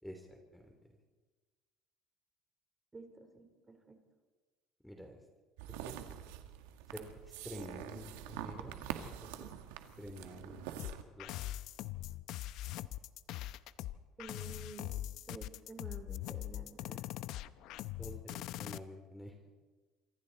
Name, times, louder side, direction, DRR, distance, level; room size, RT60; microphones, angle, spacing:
voice 1, 0.0-0.7 4.8-5.2 5.8-6.1 6.9-8.8 9.2-9.5 10.0-11.4 18.0-19.3, equal, 5° left, 4 dB, 3.3 m, -49 dB
voice 2, 2.9-4.0 14.2-15.0 15.3-17.0, right 3 dB, 20° right, 5 dB, 3.9 m, -51 dB
sound 1, 5.6-11.0, right 11 dB, 90° right, 1.7 m, -45 dB
sound 2, 10.8-18.8, left 14 dB, 65° left, 0.7 m, -42 dB
27.5 x 25.0 x 4.2 m, 1.3 s
supercardioid pair, 100°, 0 cm